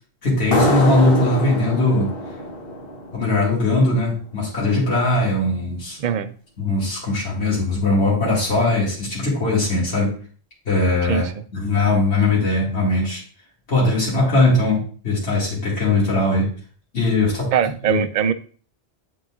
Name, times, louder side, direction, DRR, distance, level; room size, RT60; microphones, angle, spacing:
voice 1, 0.2-2.1 3.1-6.0 6.6-10.2 10.7-11.3 11.5-13.2 13.7-16.5 16.9-17.5 17.8-18.0, left 2 dB, 80° left, -6 dB, 2.3 m, -20 dB
sound 1, 0.5-3.8, left 1 dB, 60° left, 1.2 m, -24 dB
voice 2, 6.0-6.3 11.1-11.3 17.5-18.3, right 8 dB, 55° right, 11 dB, 0.5 m, -21 dB
10.5 x 3.9 x 2.3 m, 0.42 s
omnidirectional pair, 1.1 m